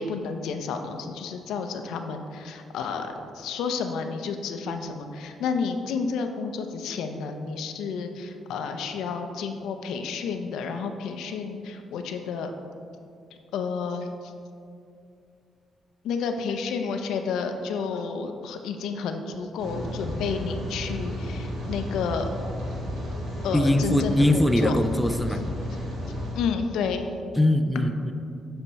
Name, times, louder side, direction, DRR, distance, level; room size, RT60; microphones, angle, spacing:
voice 1, 0.0-12.5 13.5-14.3 16.0-22.3 23.4-24.8 25.3-25.4 26.3-27.0, left 5 dB, 85° left, 6 dB, 0.5 m, -31 dB
Rain, 19.6-26.3, left 1 dB, 85° right, 1.6 m, -32 dB
voice 2, 23.5-25.4 27.4-28.1, left 1 dB, 5° left, 7 dB, 0.4 m, -22 dB
7.3 x 4.4 x 4.0 m, 2.4 s
cardioid pair, 90°, 0 cm